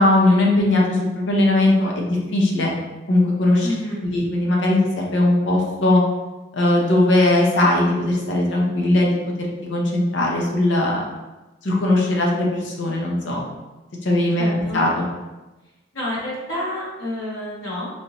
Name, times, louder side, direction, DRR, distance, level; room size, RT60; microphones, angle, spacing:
voice 1, 0.0-2.7 3.1-3.7 4.0-6.0 6.5-9.1 9.6-11.0 11.6-13.4 14.0-15.1, left 1 dB, 75° left, -2 dB, 0.7 m, -19 dB
voice 2, 3.6-4.0 14.4-14.8 15.9-17.9, left 1 dB, 90° left, -7 dB, 1.3 m, -29 dB
3.4 x 2.9 x 2.6 m, 1.1 s
head